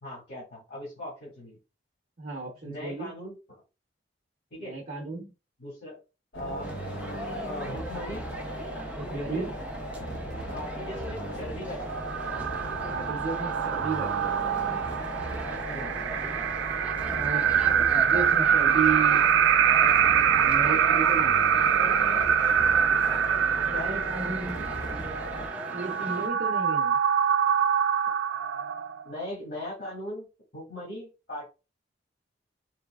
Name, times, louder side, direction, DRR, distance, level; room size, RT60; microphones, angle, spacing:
voice 1, 0.0-1.6 2.6-3.3 4.5-4.7 5.6-6.0 6.3-6.7 7.5-8.2 9.1-9.5 10.5-12.0 15.4-16.2 23.7-23.9 29.0-30.3 30.5-31.5, left 1 dB, 55° left, -7 dB, 1.9 m, -39 dB
voice 2, 2.2-3.1 4.6-5.3 8.9-9.5 12.9-14.4 17.1-19.2 20.1-21.4 23.6-24.7 25.7-27.0, right 4 dB, 45° right, -2 dB, 0.6 m, -34 dB
sound 1, 6.3-25.5, right 1 dB, 85° left, 1.1 m, -37 dB
London Eye - Amongst Crowd Below, 6.6-26.3, equal, 5° right, 0.4 m, -40 dB
sound 2, 11.8-29.2, right 8 dB, 80° right, 0.3 m, -25 dB
4.0 x 2.7 x 2.3 m, 0.30 s
head